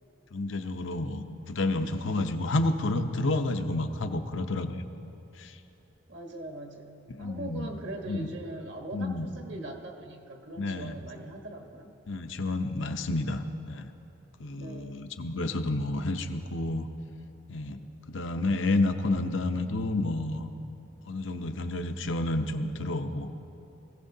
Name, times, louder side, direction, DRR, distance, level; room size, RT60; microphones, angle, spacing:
voice 1, 0.3-4.8 5.4-5.6 7.1-7.7 8.1-8.3 8.9-9.3 10.6-11.0 12.1-13.9 14.4-16.9 17.5-17.8 18.1-20.5 21.1-23.3, left 2 dB, 70° left, 7 dB, 0.7 m, -30 dB
voice 2, 6.1-11.9 14.5-15.2, right 2 dB, 65° right, 2 dB, 1.3 m, -41 dB
21.0 x 15.5 x 2.7 m, 2.8 s
head